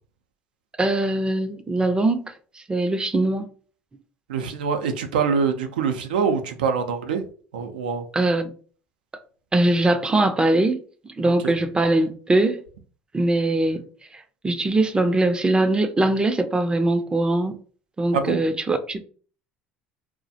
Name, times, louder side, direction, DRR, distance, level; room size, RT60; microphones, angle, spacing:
voice 1, 0.8-2.3 2.7-3.5 8.1-8.5 9.5-12.6 13.1-13.8 14.1-17.6 18.0-19.0, right 2 dB, 20° right, 0.4 m, -21 dB
voice 2, 4.3-7.2 7.5-8.0 11.2-11.5 18.1-18.4, right 6 dB, 85° right, 0.4 m, -24 dB
2.3 x 2.1 x 2.6 m
hypercardioid pair, 75°, 5 cm